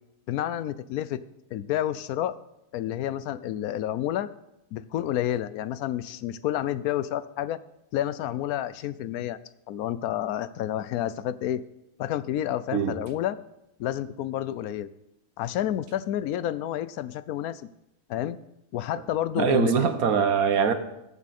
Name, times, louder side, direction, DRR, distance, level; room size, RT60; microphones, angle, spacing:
voice 1, 0.3-1.2 1.5-2.4 2.7-4.3 4.7-7.6 7.9-9.4 9.7-11.6 12.0-13.4 13.8-14.9 15.4-17.6 18.1-18.4 18.7-19.9, left 12 dB, 80° left, 15 dB, 1.0 m, -29 dB
voice 2, 19.4-20.7, right 7 dB, 75° right, 9 dB, 1.4 m, -23 dB
20.0 x 7.2 x 4.2 m, 0.89 s
omnidirectional pair, 1.6 m